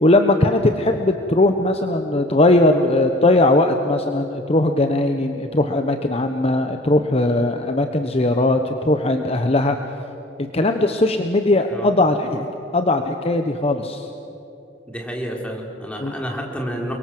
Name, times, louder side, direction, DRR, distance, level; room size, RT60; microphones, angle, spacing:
voice 1, 0.0-9.8 10.4-14.1 16.0-16.1, left 2 dB, 35° left, 6 dB, 1.1 m, -19 dB
voice 2, 14.9-16.9, equal, 5° left, 0 dB, 4.0 m, -29 dB
29.0 x 22.5 x 7.8 m, 3.0 s
head